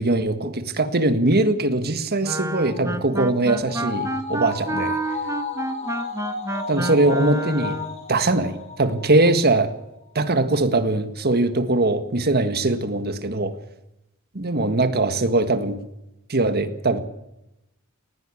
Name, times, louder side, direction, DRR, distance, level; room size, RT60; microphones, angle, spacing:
voice 1, 0.0-5.0 6.7-7.8 8.1-9.7 10.1-13.5 14.3-15.8 16.3-17.0, right 2 dB, 45° right, 10 dB, 1.7 m, -21 dB
Wind instrument woodwind instrument, 2.2-8.0, right 2 dB, 15° right, 1.1 m, -29 dB
sound 1, 2.7-9.3 9.7-9.8, left 4 dB, 30° left, 4.2 m, -33 dB
19.5 x 16.0 x 8.6 m, 0.88 s
head